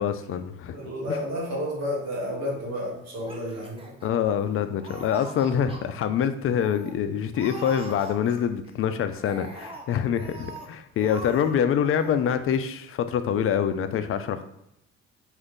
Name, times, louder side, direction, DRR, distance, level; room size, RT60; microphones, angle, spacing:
voice 1, 0.0-0.8 1.1-1.2 4.0-14.4, left 8 dB, 45° left, 10 dB, 0.4 m, -25 dB
voice 2, 0.7-3.9, left 1 dB, 60° right, -1 dB, 1.2 m, -31 dB
Laughter, 3.1-4.5 4.8-5.8 6.2-6.3 6.6-6.9 7.3-8.7 9.1-10.7 11.0-11.6 11.8-12.1, right 1 dB, 20° right, 0.8 m, -42 dB
2.6 x 2.4 x 3.6 m, 0.84 s
hypercardioid pair, 55°, 30 cm